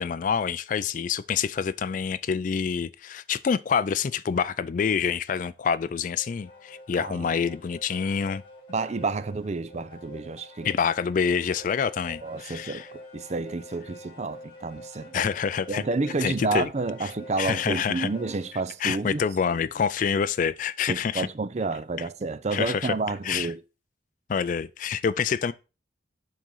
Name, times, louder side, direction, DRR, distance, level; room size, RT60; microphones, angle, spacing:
voice 1, 0.0-8.4 10.6-12.9 15.1-15.8 16.2-16.7 17.0-17.1 17.4-18.1 18.8-21.3 22.5-22.9 23.2-23.5 24.3-25.5, left 6 dB, 45° left, 0.3 m, -27 dB
sound 1, 6.0-18.6, equal, 25° left, 3.9 m, -47 dB
voice 2, 7.0-7.4 8.7-10.7 12.2-12.8 13.1-15.1 15.7-19.2 20.9-23.6, right 3 dB, 35° right, 0.5 m, -30 dB
7.5 x 3.8 x 5.4 m
head